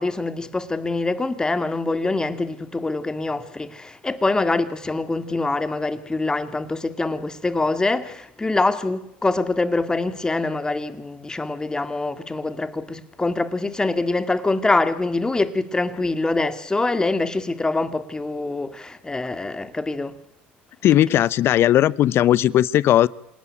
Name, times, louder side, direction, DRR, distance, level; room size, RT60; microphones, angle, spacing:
voice 1, 0.0-20.2, left 2 dB, 15° left, 2.2 m, -24 dB
voice 2, 20.8-23.1, left 12 dB, 50° left, 0.9 m, -17 dB
27.0 x 18.0 x 10.0 m
supercardioid pair, 90°, 5 cm